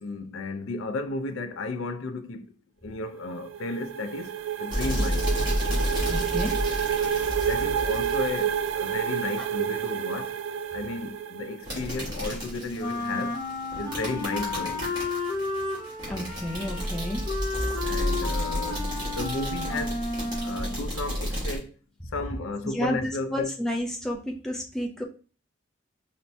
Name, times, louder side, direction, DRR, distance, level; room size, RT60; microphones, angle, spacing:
voice 1, 0.0-2.4 2.8-4.3 4.6-5.3 7.5-10.3 10.7-13.4 13.8-14.8 17.9-18.9 19.2-20.0 20.4-21.7 22.1-23.5, left 2 dB, 90° left, 0.4 m, -33 dB
sound 1, 3.2-11.9, right 8 dB, 80° right, 0.3 m, -29 dB
sound 2, 4.7-8.9 11.6-21.6, equal, 20° right, 1.4 m, -31 dB
voice 2, 6.1-6.6 9.4-9.5 16.1-17.2 22.7-23.0 23.3-25.0, left 1 dB, 5° left, 0.4 m, -31 dB
Wind instrument woodwind instrument, 12.8-20.9, left 3 dB, 40° left, 0.8 m, -32 dB
4.2 x 2.1 x 2.6 m
head